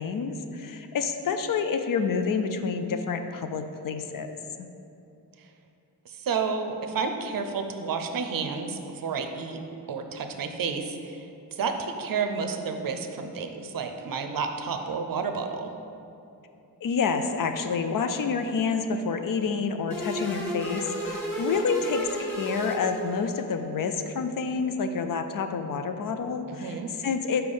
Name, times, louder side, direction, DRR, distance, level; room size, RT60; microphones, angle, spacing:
voice 1, 0.0-4.3 4.6-4.7 16.8-27.4, left 5 dB, 60° left, 7 dB, 0.5 m, -28 dB
voice 2, 6.1-9.6 9.9-15.7 26.5-26.9, right 5 dB, 60° right, 6 dB, 0.6 m, -31 dB
sound 1, 19.9-23.5, equal, 5° left, 1.3 m, -33 dB
5.1 x 4.5 x 5.4 m, 2.7 s
wide cardioid pair, 105°, 39 cm